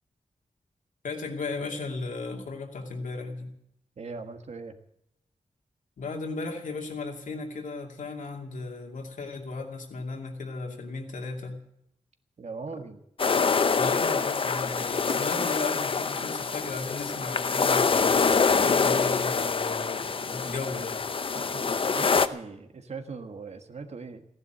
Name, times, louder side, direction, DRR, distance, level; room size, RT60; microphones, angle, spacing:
voice 1, 1.0-3.5 6.0-11.6 13.7-18.2 18.6-21.0, left 3 dB, 80° left, 2 dB, 2.6 m, -35 dB
voice 2, 4.0-4.7 12.4-13.0 21.3-24.3, right 4 dB, 55° right, 7 dB, 1.5 m, -40 dB
sound 1, 13.2-22.3, left 5 dB, 45° left, 0.7 m, -25 dB
15.5 x 11.0 x 7.9 m, 0.76 s
wide cardioid pair, 140°, 13 cm